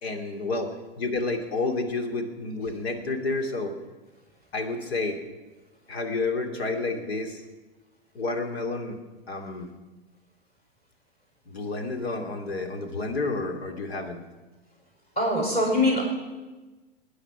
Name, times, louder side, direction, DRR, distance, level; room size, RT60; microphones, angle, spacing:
voice 1, 0.0-3.8 4.5-5.2 5.9-7.4 8.1-9.0 9.3-9.7 11.5-14.2, left 3 dB, 80° left, 5 dB, 2.6 m, -30 dB
voice 2, 15.2-16.0, left 1 dB, 20° left, -1 dB, 6.0 m, -22 dB
20.0 x 9.8 x 6.0 m, 1.2 s
hypercardioid pair, 130°, 31 cm